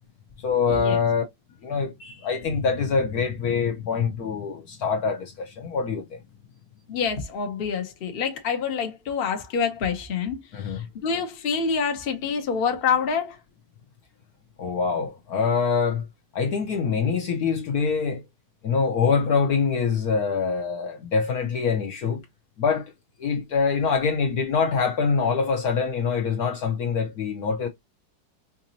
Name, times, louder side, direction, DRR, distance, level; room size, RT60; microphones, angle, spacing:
voice 1, 0.4-1.2 1.6-6.2 10.5-10.9 14.6-16.1 16.3-18.2 18.6-22.2 22.6-22.9 23.2-27.7, left 5 dB, 60° left, 1.1 m, -24 dB
voice 2, 6.9-13.4, left 6 dB, 40° left, 1.0 m, -27 dB
5.0 x 2.6 x 2.8 m
omnidirectional pair, 1.9 m